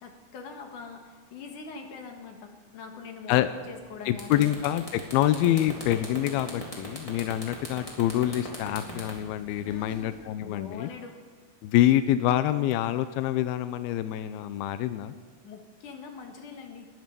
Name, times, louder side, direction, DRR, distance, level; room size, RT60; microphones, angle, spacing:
voice 1, 0.0-4.5 9.6-11.2 15.4-16.9, left 5 dB, 60° left, 3 dB, 2.8 m, -43 dB
sound 1, 3.8-3.9 4.1-10.2, left 1 dB, 10° left, 2.7 m, -40 dB
voice 2, 4.1-10.9 11.6-15.1, left 13 dB, 80° left, 11 dB, 2.5 m, -26 dB
21.5 x 9.6 x 6.8 m, 1.5 s
omnidirectional pair, 4.5 m